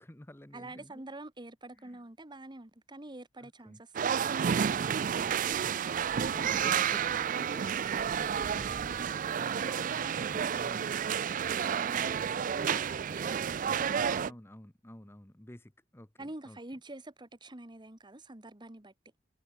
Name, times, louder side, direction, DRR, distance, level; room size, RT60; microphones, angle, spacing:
voice 1, 0.0-1.0 1.8-2.0 3.4-3.8 4.9-5.4 6.1-7.7 8.0-10.9 13.9-16.6, left 1 dB, 15° left, 1.2 m, -50 dB
voice 2, 0.5-6.0 11.5-12.2 12.5-14.4 16.2-18.9, right 2 dB, 25° right, 1.4 m, -47 dB
sound 1, 3.9-14.3, right 7 dB, 45° right, 0.4 m, -31 dB
head